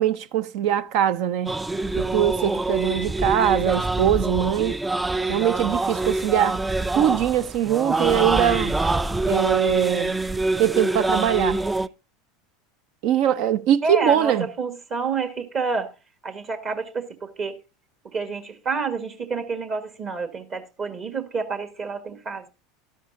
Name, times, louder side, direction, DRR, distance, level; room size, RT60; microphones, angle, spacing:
voice 1, 0.0-1.6 2.0-4.8 5.3-6.6 6.9-8.8 9.3-10.1 10.6-11.6 13.0-14.5, right 10 dB, 65° right, 0.6 m, -22 dB
sound 1, 1.5-11.9, right 2 dB, 10° right, 0.4 m, -25 dB
voice 2, 13.8-15.9 16.2-17.6 18.0-22.5, right 4 dB, 40° right, 1.7 m, -29 dB
12.5 x 11.0 x 2.7 m
hypercardioid pair, 95°, 0 cm